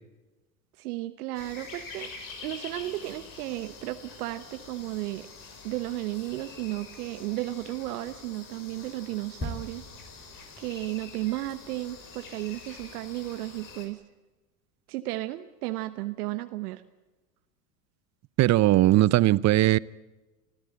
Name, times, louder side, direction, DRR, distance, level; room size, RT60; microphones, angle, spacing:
voice 1, 0.8-2.1 2.4-5.3 5.6-9.8 10.6-14.0 14.9-16.8, right 17 dB, 70° right, 1.2 m, -34 dB
sound 1, 1.3-13.9, left 4 dB, 45° left, 5.7 m, -46 dB
sound 2, 9.4-13.3 13.6-13.7, left 1 dB, 20° left, 7.6 m, -42 dB
voice 2, 18.4-19.8, right 15 dB, 35° right, 0.7 m, -19 dB
25.5 x 15.5 x 8.6 m
hypercardioid pair, 90°, 47 cm